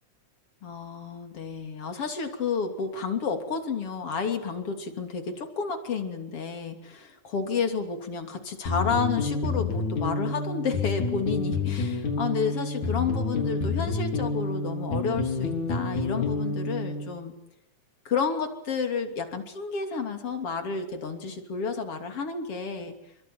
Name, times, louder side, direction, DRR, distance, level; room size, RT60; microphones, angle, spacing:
voice 1, 0.6-17.3 18.1-22.9, left 5 dB, 50° left, 7 dB, 3.8 m, -31 dB
sound 1, 8.7-17.1, left 3 dB, 75° left, 5.5 m, -29 dB
27.5 x 23.5 x 9.2 m, 0.80 s
omnidirectional pair, 3.4 m